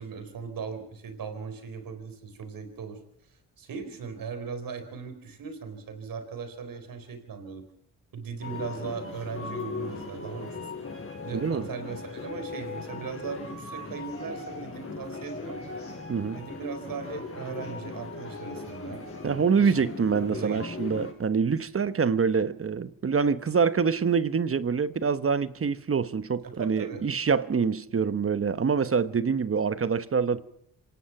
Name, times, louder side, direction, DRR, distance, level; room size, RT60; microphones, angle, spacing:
voice 1, 0.0-3.0 3.3-7.6 8.1-10.7 11.2-15.6 16.3-19.8 20.2-20.9 26.4-27.0, right 5 dB, 75° right, 4.3 m, -38 dB
sound 1, 8.4-21.1, left 4 dB, 40° left, 6.3 m, -38 dB
voice 2, 11.3-11.7 16.1-16.4 19.2-30.4, right 5 dB, 40° right, 1.1 m, -25 dB
27.0 x 17.5 x 6.0 m
cardioid pair, 80°, 34 cm